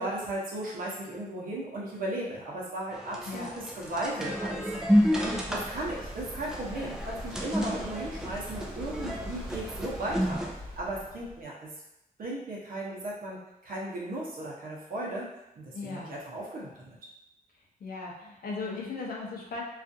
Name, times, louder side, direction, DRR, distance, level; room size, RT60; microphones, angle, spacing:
voice 1, 0.0-4.9 5.2-10.4 10.8-11.7 12.2-15.3 15.6-17.0, right 1 dB, 65° right, -5 dB, 0.8 m, -36 dB
sound 1, 2.9-10.5, equal, 5° right, 0.3 m, -31 dB
Waves surf, 4.0-11.4, equal, 40° right, 1.0 m, -43 dB
voice 2, 15.7-16.1 17.8-19.6, left 3 dB, 70° left, -1 dB, 0.6 m, -37 dB
2.4 x 2.4 x 2.6 m, 0.90 s
wide cardioid pair, 135°, 15 cm